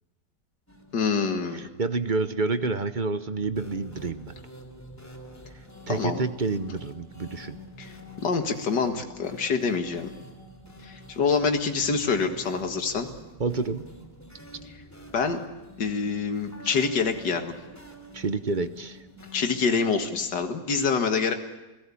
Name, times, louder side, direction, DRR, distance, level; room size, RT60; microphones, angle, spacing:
sound 1, 0.7-20.5, equal, 10° left, 2.8 m, -48 dB
voice 1, 0.9-1.7 5.9-6.2 7.8-7.9 8.2-10.1 10.8-13.1 15.1-15.4 15.8-17.5 19.3-21.3, left 5 dB, 75° left, 6 dB, 2.5 m, -26 dB
voice 2, 1.5-4.3 5.9-7.6 13.4-13.8 16.6-16.7 18.1-19.0, right 4 dB, 35° right, 11 dB, 0.9 m, -28 dB
29.0 x 17.5 x 8.5 m, 1.1 s
omnidirectional pair, 1.9 m